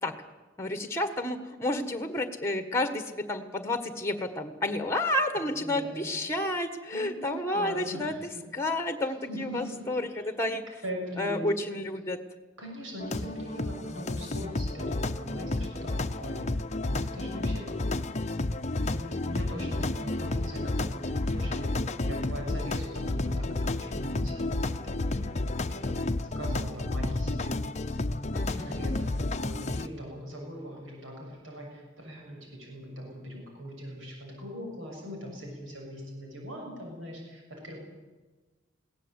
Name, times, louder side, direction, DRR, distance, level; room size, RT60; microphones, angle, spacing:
voice 1, 0.6-8.1 8.5-10.6 11.2-12.2 28.3-28.9, left 1 dB, 15° left, 9 dB, 1.6 m, -30 dB
voice 2, 5.6-6.1 6.9-8.2 9.3-9.9 10.2-10.3 10.8-11.5 12.6-18.1 18.8-27.6 28.6-37.8, equal, 70° right, 0 dB, 6.8 m, -41 dB
sound 1, 13.0-29.9, left 2 dB, 35° left, 0.8 m, -31 dB
21.5 x 17.5 x 8.3 m, 1.3 s
head